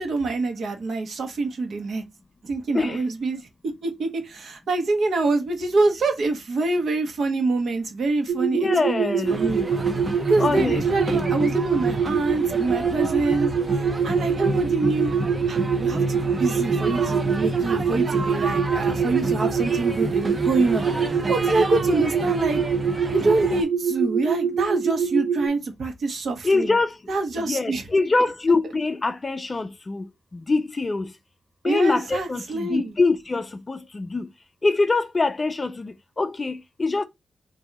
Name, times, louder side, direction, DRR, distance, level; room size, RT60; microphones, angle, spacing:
voice 1, 0.0-2.0 2.4-9.7 10.3-15.1 15.5-20.8 21.3-22.6 23.1-26.8 27.1-27.9 28.6-28.7 31.6-33.0, right 3 dB, 60° right, 1.2 m, -26 dB
sound 1, 8.3-25.5, right 7 dB, 85° right, 0.6 m, -24 dB
voice 2, 8.5-9.4 10.4-10.8 11.1-11.3 26.4-27.0 27.4-30.1 30.3-31.1 31.6-34.3 34.6-37.0, left 3 dB, 25° left, 0.4 m, -24 dB
sound 2, 9.3-23.6, right 1 dB, 25° right, 0.7 m, -29 dB
3.9 x 2.7 x 4.6 m
wide cardioid pair, 150°, 0 cm